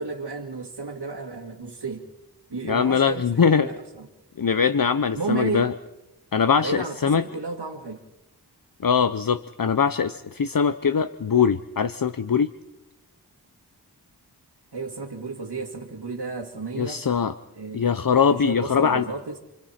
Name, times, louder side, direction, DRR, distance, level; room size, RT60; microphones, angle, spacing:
voice 1, 0.0-2.1 2.5-4.1 5.1-5.7 6.6-8.0 14.7-17.0 17.5-17.9 18.3-19.4, right 4 dB, 80° right, -1 dB, 2.2 m, -32 dB
voice 2, 2.7-3.7 4.4-5.7 6.3-7.2 8.8-12.5 16.8-17.3 17.7-19.0, left 6 dB, 55° left, 11 dB, 0.8 m, -22 dB
29.0 x 27.5 x 4.4 m, 0.97 s
wide cardioid pair, 50°, 40 cm